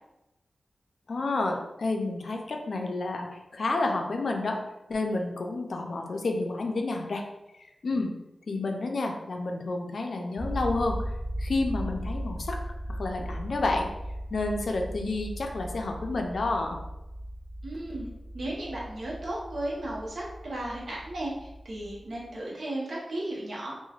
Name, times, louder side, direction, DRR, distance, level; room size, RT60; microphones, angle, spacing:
voice 1, 1.1-7.2 7.8-8.1 8.5-11.0 11.4-12.6 12.9-13.9 14.3-16.8, left 2 dB, 75° left, 2 dB, 0.4 m, -30 dB
sound 1, 10.4-22.3, equal, 25° right, 1.0 m, -37 dB
voice 2, 17.6-18.1 18.3-23.7, right 1 dB, 75° right, -4 dB, 0.8 m, -35 dB
3.1 x 2.1 x 2.3 m, 0.95 s
cardioid pair, 50°, 0 cm